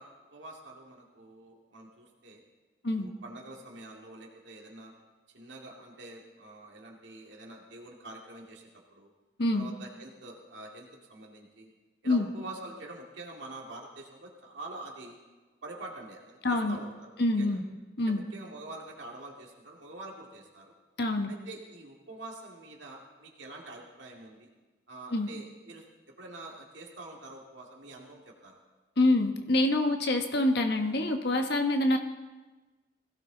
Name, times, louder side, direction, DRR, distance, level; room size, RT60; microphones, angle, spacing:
voice 1, 0.0-2.4 3.0-4.9 5.3-8.6 8.9-9.1 9.5-11.7 12.0-15.2 15.6-17.6 18.1-20.7 21.3-24.5 24.9-25.9 26.2-28.6, right 2 dB, 85° right, -1 dB, 2.2 m, -46 dB
voice 2, 16.4-16.8 17.2-17.6 18.0-18.2 21.0-21.3 25.1-25.3 29.0-32.0, left 2 dB, 65° left, 5 dB, 1.3 m, -26 dB
21.0 x 17.0 x 3.9 m, 1.3 s
head